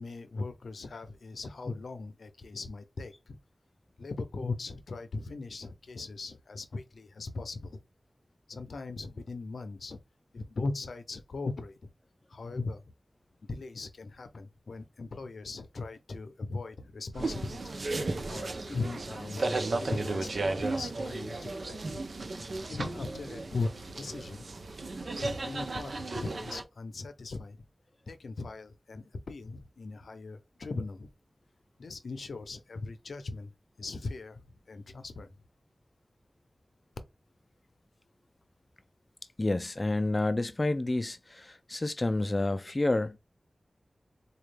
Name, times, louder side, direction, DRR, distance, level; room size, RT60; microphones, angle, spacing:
voice 1, 0.0-3.4 4.0-7.8 8.5-10.0 10.3-11.8 12.3-12.8 13.5-17.6 18.3-20.3 20.6-22.0 22.7-23.7 24.0-24.5 25.2-27.6 28.1-31.1 31.8-33.5 33.8-34.4 34.7-35.3, left 3 dB, 85° left, 0.5 m, -39 dB
sound 1, 17.1-26.6, right 2 dB, 70° right, 0.5 m, -34 dB
voice 2, 39.4-43.2, left 2 dB, 35° left, 0.3 m, -29 dB
4.1 x 2.3 x 3.3 m
wide cardioid pair, 55°, 0 cm